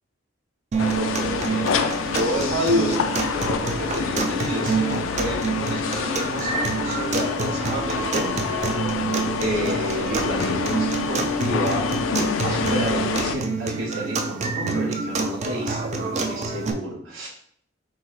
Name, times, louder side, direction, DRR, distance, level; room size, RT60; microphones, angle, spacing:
sound 1, 0.7-16.7, right 4 dB, 35° right, 0.4 m, -27 dB
sound 2, 0.8-13.4, left 6 dB, 85° left, 0.4 m, -27 dB
voice 1, 1.0-1.7 2.1-8.4 9.4-17.3, equal, 85° right, -2 dB, 0.9 m, -29 dB
5.8 x 2.1 x 4.0 m, 0.64 s
head